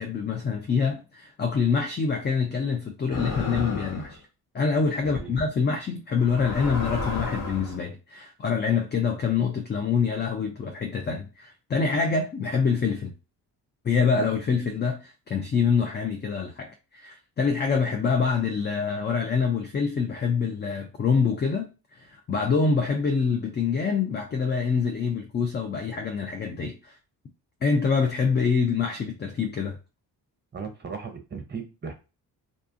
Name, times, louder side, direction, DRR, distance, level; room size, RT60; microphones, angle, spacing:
voice 1, 0.0-4.2 4.5-13.1 13.8-27.0 27.6-29.8, left 5 dB, 25° left, 0.3 m, -26 dB
sound 1, 3.1-4.2 5.2-5.4 6.2-7.8, left 3 dB, 40° left, 0.9 m, -32 dB
voice 2, 30.5-31.9, right 5 dB, 20° right, 0.8 m, -36 dB
2.5 x 2.3 x 2.6 m
hypercardioid pair, 45°, 50 cm